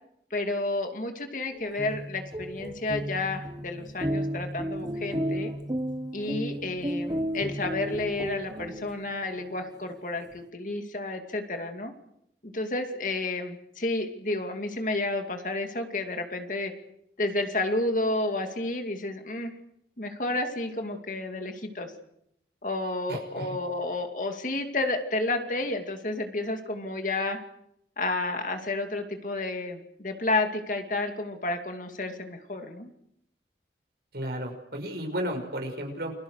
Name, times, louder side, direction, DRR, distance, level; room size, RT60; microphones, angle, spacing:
voice 1, 0.3-5.5 6.1-11.9 12.4-16.7 17.2-19.5 20.0-21.9 22.6-27.4 28.0-32.9, left 2 dB, 45° left, 5 dB, 2.6 m, -31 dB
sound 1, 1.6-9.3, equal, 25° right, 1.2 m, -33 dB
voice 2, 23.1-23.5 34.1-36.1, equal, 65° right, 3 dB, 5.9 m, -33 dB
29.5 x 22.5 x 6.5 m, 0.77 s
head